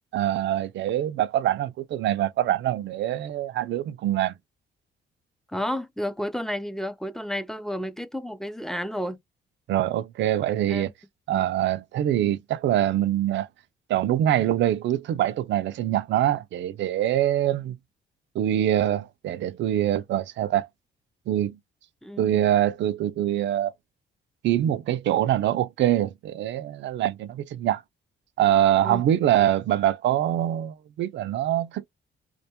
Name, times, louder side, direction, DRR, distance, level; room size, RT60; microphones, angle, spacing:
voice 1, 0.1-4.4 9.7-10.9 11.3-13.5 13.9-17.8 18.3-20.7 21.3-21.6 22.2-23.7 24.4-27.8 28.4-31.8, right 12 dB, 65° right, 0.4 m, -24 dB
voice 2, 5.5-9.2 10.7-10.9 11.3-11.4 22.0-22.5 28.8-29.0, equal, ahead, 0.4 m, -31 dB
2.4 x 2.2 x 2.8 m
cardioid pair, 90°, 20 cm